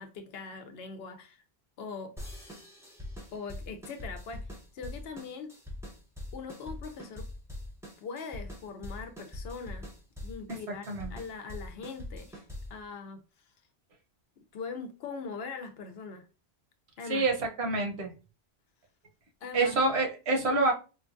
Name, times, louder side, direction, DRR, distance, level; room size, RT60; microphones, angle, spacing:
voice 1, 0.0-1.4 1.8-2.1 2.4-2.5 3.3-4.5 4.7-5.5 6.3-7.3 8.0-9.8 10.2-12.4 12.7-13.2 14.5-16.2 17.0-17.2 19.4-19.8 20.4-20.5, left 4 dB, 70° left, 0.8 m, -41 dB
sound 1, 2.2-12.8, left 1 dB, 5° right, 0.6 m, -43 dB
voice 2, 17.1-18.1 19.5-20.7, right 3 dB, 80° right, 1.1 m, -27 dB
4.4 x 2.3 x 2.5 m
omnidirectional pair, 1.1 m